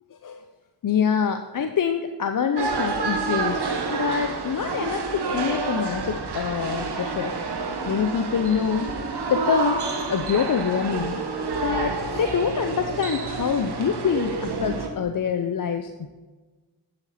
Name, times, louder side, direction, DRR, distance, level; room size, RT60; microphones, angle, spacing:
voice 1, 0.8-3.6 3.9-7.3 7.9-8.9 9.3-11.2 11.6-16.1, left 7 dB, 50° left, 7 dB, 0.6 m, -25 dB
sound 1, 2.6-14.9, right 4 dB, 65° right, 1.3 m, -29 dB
8.8 x 7.8 x 4.3 m, 1.3 s
cardioid pair, 40°, 42 cm